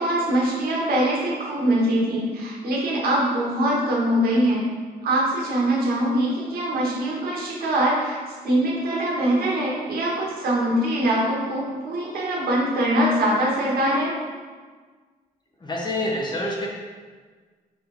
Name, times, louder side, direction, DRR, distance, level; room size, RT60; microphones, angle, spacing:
voice 1, 0.0-4.7 5.0-14.1, right 1 dB, 75° right, -5 dB, 2.0 m, -23 dB
voice 2, 15.6-16.7, left 1 dB, 30° left, -3 dB, 1.3 m, -27 dB
4.9 x 4.7 x 5.2 m, 1.5 s
cardioid pair, 110°, 16 cm